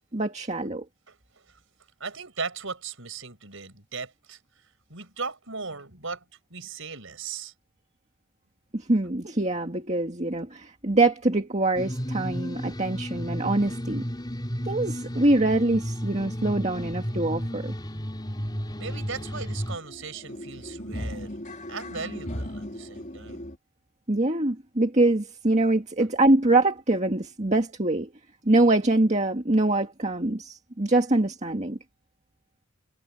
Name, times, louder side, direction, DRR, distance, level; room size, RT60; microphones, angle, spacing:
voice 1, 0.1-0.9 8.7-14.0 14.6-17.7 24.1-28.1 28.5-31.8, right 2 dB, 30° right, 1.9 m, -24 dB
voice 2, 2.0-4.4 4.9-6.2 6.5-7.5 18.8-21.3 21.7-23.4, right 4 dB, 60° right, 6.9 m, -37 dB
sound 1, 11.7-19.8, equal, 20° left, 4.6 m, -33 dB
sound 2, 17.1-17.3 17.5-23.6, left 1 dB, 35° left, 4.7 m, -39 dB
head